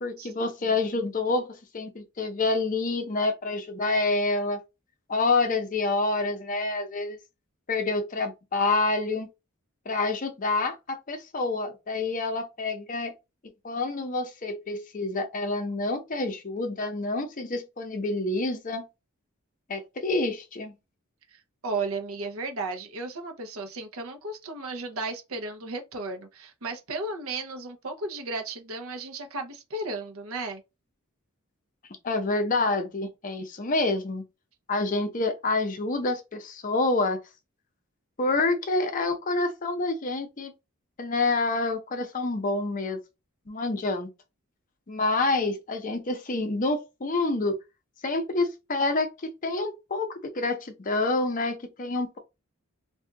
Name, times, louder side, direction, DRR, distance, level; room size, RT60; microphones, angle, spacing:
voice 1, 0.0-4.6 5.1-7.2 7.7-9.3 9.9-13.1 13.6-18.9 19.7-20.7 32.0-34.2 34.7-37.2 38.2-40.5 41.0-43.0 43.5-44.1 44.9-47.6 48.0-52.2, left 3 dB, 40° left, 0.6 m, -27 dB
voice 2, 21.3-30.6, right 3 dB, 80° right, 0.7 m, -34 dB
2.6 x 2.3 x 3.6 m
head